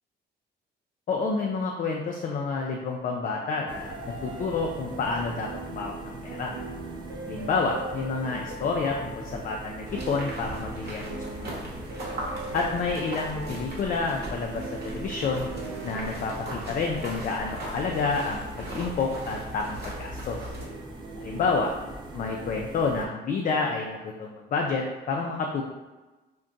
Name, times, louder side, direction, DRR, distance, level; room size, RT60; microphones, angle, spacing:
voice 1, 1.1-6.5 7.3-11.6 12.5-15.5 15.8-20.4 21.2-21.7 22.1-25.6, left 4 dB, 45° left, 0 dB, 0.4 m, -29 dB
sound 1, 3.3-22.5, right 2 dB, 85° right, 0.5 m, -42 dB
sound 2, 3.7-23.1, right 1 dB, 25° right, 0.5 m, -42 dB
sound 3, 9.9-20.7, right 1 dB, 55° right, 0.9 m, -39 dB
2.4 x 2.2 x 3.8 m, 1.2 s
cardioid pair, 90°, 20 cm